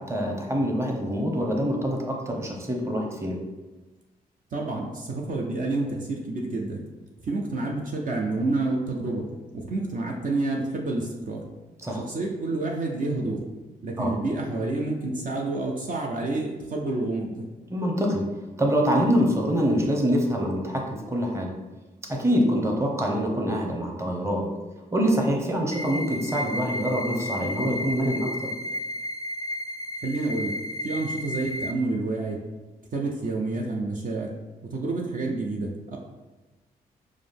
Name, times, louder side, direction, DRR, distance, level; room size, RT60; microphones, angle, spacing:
voice 1, 0.0-3.4 11.8-12.0 14.0-14.1 17.7-18.3 18.6-21.5 22.1-24.5 24.9-28.5, equal, 15° right, 0 dB, 0.9 m, -25 dB
voice 2, 4.5-6.8 7.2-9.3 9.5-11.4 12.0-13.5 13.8-17.5 30.0-30.6 30.8-32.4 32.9-34.3 34.6-36.0, right 2 dB, 55° right, 0 dB, 0.6 m, -29 dB
sound 1, 25.7-31.7, left 1 dB, 20° left, 0.3 m, -33 dB
4.8 x 2.1 x 3.6 m, 1.2 s
supercardioid pair, 55°, 17 cm